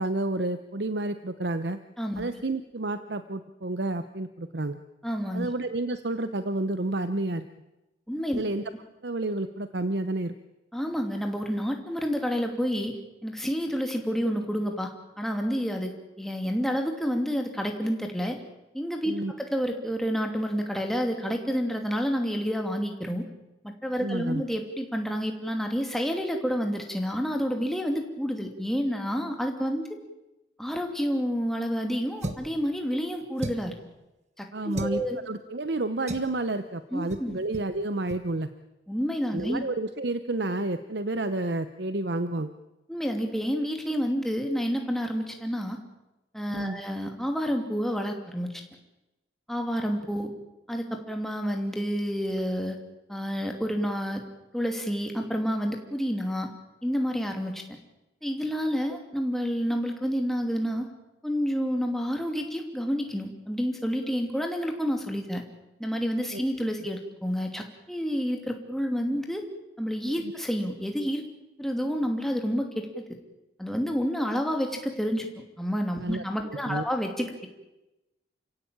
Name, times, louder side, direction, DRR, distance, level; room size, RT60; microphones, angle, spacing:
voice 1, 0.0-1.8 2.2-4.8 5.3-7.5 8.3-8.6 9.0-10.3 19.1-19.3 24.0-24.4 34.5-38.5 39.3-42.5 46.5-46.8 66.3-66.4 70.2-70.3 76.0-76.2 76.7-76.8, right 2 dB, 65° right, 11 dB, 0.9 m, -30 dB
voice 2, 5.0-5.5 8.1-8.4 10.7-13.0 13.2-14.9 15.2-15.9 16.2-18.4 18.7-23.3 23.6-29.9 30.6-33.7 34.4-35.2 36.9-37.3 38.9-39.6 42.9-45.8 46.3-48.6 49.5-50.3 50.7-52.8 53.1-54.2 54.5-56.5 56.8-57.6 58.2-60.9 61.2-65.4 65.8-69.4 69.8-71.2 71.6-73.0 73.6-77.5, equal, ahead, 3 dB, 2.7 m, -29 dB
sound 1, 32.2-32.6 33.4-33.8 34.7-35.0 36.1-36.3 37.1-37.3 37.5-37.7 38.1-38.2, right 1 dB, 35° right, 1.6 m, -35 dB
29.0 x 16.5 x 8.8 m, 1.0 s
head